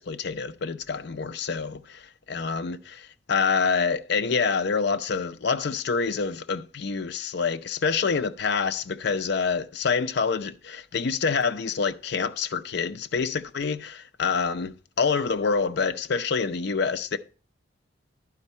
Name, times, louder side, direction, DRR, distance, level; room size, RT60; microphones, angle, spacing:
voice 1, 0.0-17.2, left 5 dB, 60° left, 0.5 m, -27 dB
11.0 x 4.5 x 4.2 m
head